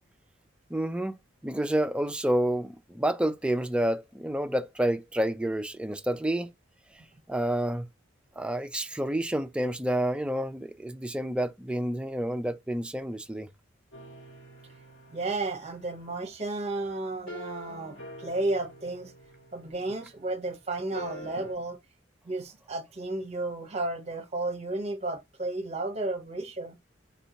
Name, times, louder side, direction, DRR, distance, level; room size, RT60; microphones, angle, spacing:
voice 1, 0.7-1.2 1.4-6.5 7.3-7.9 8.4-13.5, right 1 dB, 5° right, 0.3 m, -29 dB
sound 1, 13.9-20.2 20.9-21.5, equal, 75° left, 1.9 m, -46 dB
voice 2, 15.1-19.1 19.5-21.8 22.2-26.8, right 2 dB, 35° right, 0.7 m, -33 dB
4.2 x 2.8 x 2.6 m
head